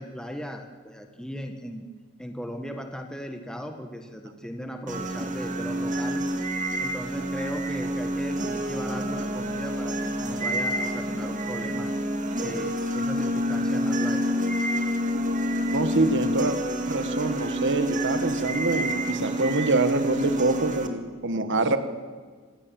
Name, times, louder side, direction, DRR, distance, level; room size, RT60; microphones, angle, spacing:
voice 1, 0.0-1.8 2.2-6.3 6.8-11.9 12.4-14.3, equal, 5° left, 4 dB, 1.3 m, -37 dB
sound 1, 4.9-20.9, equal, 35° right, 2.1 m, -28 dB
voice 2, 15.7-16.6 16.9-21.8, right 2 dB, 55° right, 9 dB, 1.6 m, -25 dB
26.0 x 17.5 x 7.7 m, 1.5 s
head